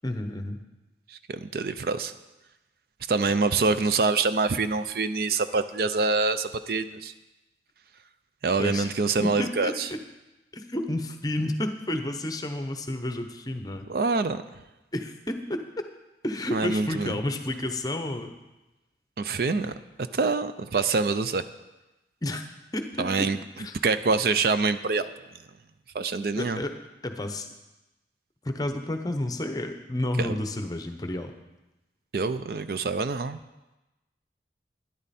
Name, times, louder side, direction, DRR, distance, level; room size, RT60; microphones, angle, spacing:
voice 1, 0.0-0.6 8.6-8.9 9.2-10.0 10.5-13.9 14.9-15.9 16.2-18.4 22.2-22.4 22.7-23.3 23.6-23.8 26.3-26.7 27.0-27.5 28.4-31.3, left 1 dB, 20° left, 7 dB, 0.8 m, -31 dB
voice 2, 1.1-2.1 3.1-7.1 8.4-9.9 13.9-14.4 16.5-17.1 19.2-19.7 20.1-21.4 23.0-23.4 23.8-25.1 25.9-26.6 30.2-30.4 32.1-33.4, right 4 dB, 55° right, 12 dB, 0.4 m, -25 dB
12.5 x 10.5 x 4.2 m, 1.0 s
head